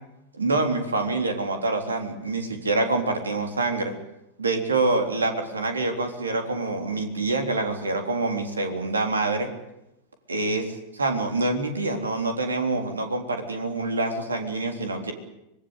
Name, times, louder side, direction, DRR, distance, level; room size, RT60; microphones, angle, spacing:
voice 1, 0.4-3.9 4.4-9.5 10.3-15.1, right 3 dB, 75° right, 5 dB, 3.6 m, -26 dB
25.0 x 20.5 x 8.3 m, 0.89 s
figure-of-eight pair, 90°, 0 cm